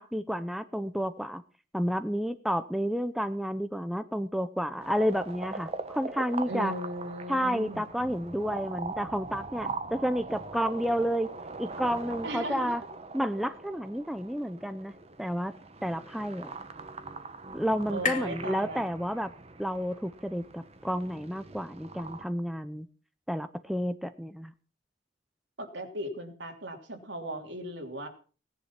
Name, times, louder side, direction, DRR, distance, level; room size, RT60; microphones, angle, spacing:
voice 1, 0.0-1.4 1.7-6.7 7.3-11.3 11.6-12.8 13.1-14.9 15.2-15.5 15.8-16.5 17.5-19.3 19.6-22.9 23.3-24.5, equal, ahead, 11 dB, 0.6 m, -31 dB
sound 1, 4.8-22.3, right 3 dB, 35° right, 1.4 m, -42 dB
voice 2, 6.4-7.8 12.2-12.7 17.9-18.8 25.6-28.1, right 1 dB, 70° right, 5 dB, 3.1 m, -37 dB
sound 2, 15.7-19.5, left 6 dB, 40° left, 2.7 m, -40 dB
18.5 x 10.5 x 5.8 m, 0.38 s
head